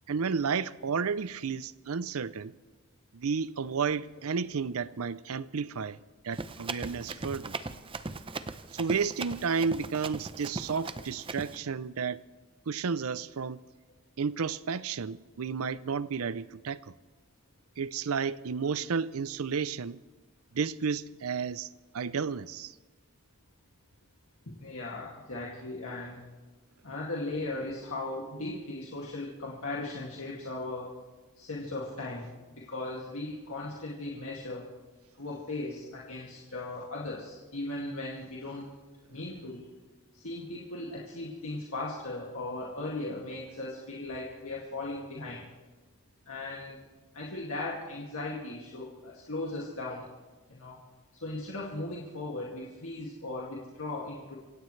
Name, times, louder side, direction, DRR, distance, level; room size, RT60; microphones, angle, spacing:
voice 1, 0.1-2.5 3.1-6.0 6.2-7.6 8.7-12.2 12.7-13.6 14.2-16.9 17.8-20.0 20.5-21.7 21.9-22.8, right 5 dB, 75° right, 0.5 m, -32 dB
Run, 6.3-11.6, right 3 dB, 25° right, 0.6 m, -39 dB
voice 2, 24.5-26.2 26.8-30.9 31.4-32.3 32.6-34.7 35.2-38.7 39.1-39.7 40.1-45.5 46.3-46.8 47.1-50.1 50.5-50.8 51.1-54.4, left 2 dB, 65° left, 2.3 m, -37 dB
26.0 x 16.5 x 3.3 m
head